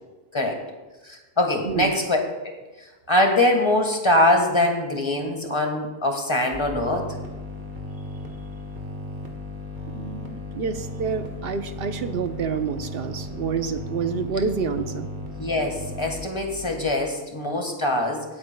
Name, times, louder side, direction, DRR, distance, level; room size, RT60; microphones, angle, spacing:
voice 1, 1.0-2.2 2.4-2.5 3.1-7.1 15.4-18.2, left 1 dB, 30° left, 3 dB, 1.5 m, -23 dB
voice 2, 1.6-2.0 9.9-15.1, right 5 dB, 70° right, 8 dB, 1.0 m, -28 dB
sound 1, 6.5-16.9, left 2 dB, 50° right, 1.5 m, -36 dB
24.0 x 8.6 x 2.2 m, 1.2 s
omnidirectional pair, 1.0 m